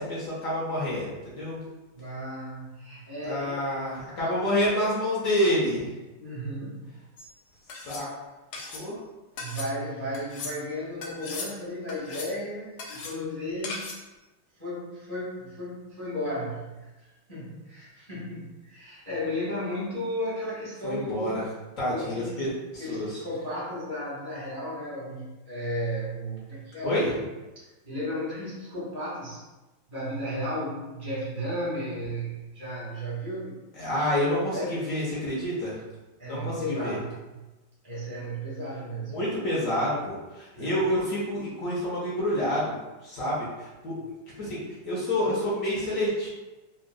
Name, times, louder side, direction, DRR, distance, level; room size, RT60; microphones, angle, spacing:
voice 1, 0.0-1.6 3.2-5.9 7.7-8.1 8.7-9.0 20.8-21.4 21.8-23.2 26.8-27.2 33.7-35.8 36.2-37.0 39.1-42.7 43.0-44.0 44.4-46.3, left 1 dB, 60° left, -6 dB, 0.8 m, -28 dB
voice 2, 1.9-3.6 4.2-4.7 6.2-7.0 9.4-13.9 14.6-21.4 21.8-27.1 27.8-29.4 29.9-33.6 34.5-34.8 36.2-37.2 37.8-39.2 40.5-40.7, equal, 15° left, -9 dB, 0.6 m, -34 dB
sound 1, 7.2-7.3 7.7-8.1 8.5-8.8 9.4-9.7 10.1-10.6 11.0-11.5 11.9-12.4 12.8-13.1 13.6-14.0, left 3 dB, 90° left, 0.9 m, -38 dB
3.7 x 2.3 x 2.3 m, 1.1 s
omnidirectional pair, 2.3 m